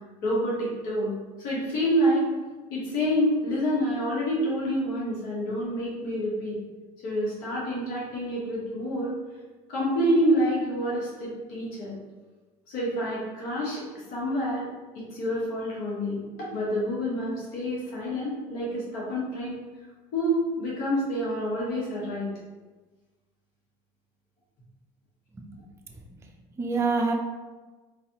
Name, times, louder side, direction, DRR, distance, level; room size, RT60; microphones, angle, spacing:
voice 1, 0.2-1.1 1.4-2.3 2.7-6.6 7.0-9.2 9.7-11.9 12.7-13.8 14.1-14.7 14.9-19.6 20.1-22.3, equal, 75° left, -6 dB, 1.2 m, -27 dB
voice 2, 25.3-25.7 25.9-27.1, right 4 dB, 20° right, 1 dB, 0.5 m, -29 dB
3.9 x 2.7 x 2.8 m, 1.2 s
supercardioid pair, 100°, 15 cm